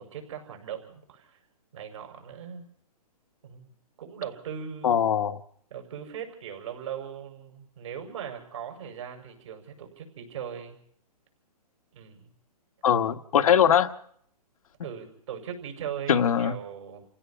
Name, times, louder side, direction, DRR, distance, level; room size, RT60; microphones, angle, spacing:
voice 1, 0.0-1.4 1.7-2.7 3.4-3.7 4.0-5.0 5.7-10.8 11.9-12.3 13.4-13.5 14.8-17.1, right 8 dB, 50° right, 4 dB, 6.1 m, -39 dB
voice 2, 4.8-5.4 12.8-13.9 16.1-16.5, left 8 dB, 60° left, 9 dB, 1.3 m, -21 dB
28.5 x 16.5 x 5.8 m, 0.66 s
hypercardioid pair, 170°, 21 cm